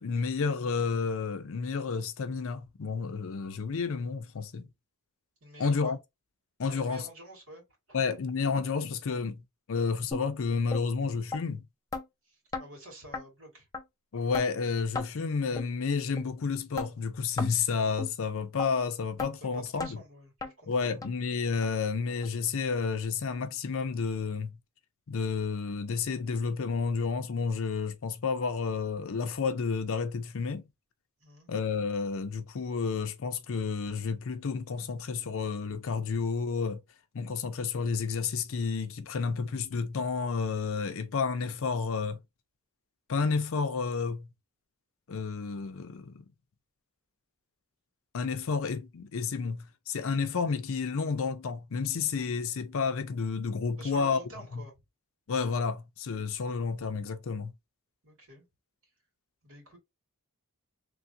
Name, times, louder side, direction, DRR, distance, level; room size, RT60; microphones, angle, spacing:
voice 1, 0.0-4.7 5.6-6.0 6.6-7.0 7.9-11.6 14.1-19.9 20.7-24.5 25.1-30.6 31.5-36.8 37.1-42.2 43.1-44.3 45.1-46.2 48.1-54.2 55.3-57.5, left 5 dB, 65° left, 0.5 m, -31 dB
voice 2, 5.4-5.9 6.7-8.0 12.2-13.7 19.4-21.0 31.2-31.5 53.8-54.8 58.0-58.5 59.4-59.8, right 1 dB, 65° right, 2.0 m, -49 dB
sound 1, 10.1-10.2 10.7-10.8 11.3-11.4 11.9-12.0 12.5-12.7 13.1-13.2 13.7-13.8 14.3-14.5 14.9-15.1 15.6-15.7 16.2-16.3 16.8-16.9 17.4-17.5 18.0-18.1 18.6-18.7 19.2-19.3 19.8-19.9 20.4-20.5 21.0-21.1 21.6-21.7 22.2-22.3 22.8-22.9, left 3 dB, 15° left, 0.5 m, -35 dB
3.2 x 2.4 x 2.7 m
head